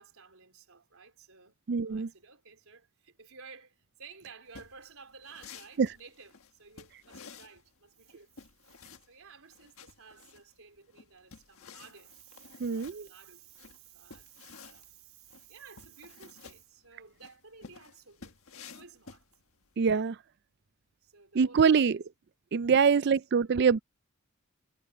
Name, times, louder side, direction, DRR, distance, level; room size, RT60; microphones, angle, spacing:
voice 1, 0.0-8.8 9.1-19.3 21.0-22.0 22.5-23.2, right 5 dB, 70° right, 4.0 m, -54 dB
voice 2, 1.7-2.1 5.8-5.9 12.6-13.1 19.8-20.2 21.4-22.0 22.5-23.8, right 6 dB, 50° right, 0.4 m, -24 dB
sound 1, 4.5-19.7, left 5 dB, 70° left, 1.5 m, -53 dB
head